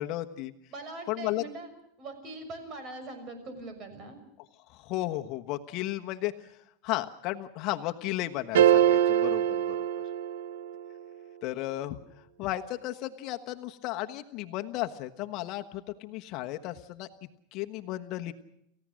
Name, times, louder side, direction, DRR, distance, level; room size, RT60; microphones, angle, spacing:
voice 1, 0.0-0.5 1.1-1.4 4.7-6.5 6.8-9.8 11.4-12.0 12.4-17.1 17.5-18.3, left 16 dB, 50° left, 6 dB, 1.2 m, -34 dB
voice 2, 0.7-1.7 2.0-4.2, right 2 dB, 35° right, 7 dB, 6.3 m, -42 dB
sound 1, 8.5-10.8, right 10 dB, 85° right, 1.1 m, -23 dB
29.5 x 15.5 x 6.4 m, 0.76 s
supercardioid pair, 135°, 0 cm